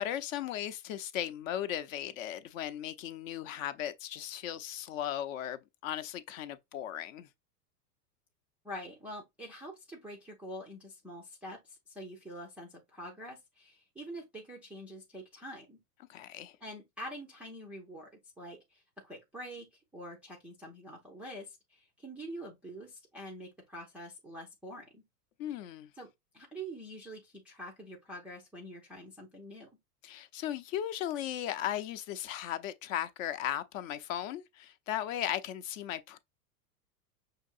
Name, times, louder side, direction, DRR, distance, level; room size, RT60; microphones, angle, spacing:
voice 1, 0.0-7.3 16.1-16.6 25.4-25.9 30.0-36.2, left 11 dB, 50° left, 0.7 m, -37 dB
voice 2, 8.6-15.8 16.6-25.0 26.0-29.7, equal, 5° right, 0.3 m, -46 dB
5.8 x 2.8 x 2.4 m
hypercardioid pair, 105°, 49 cm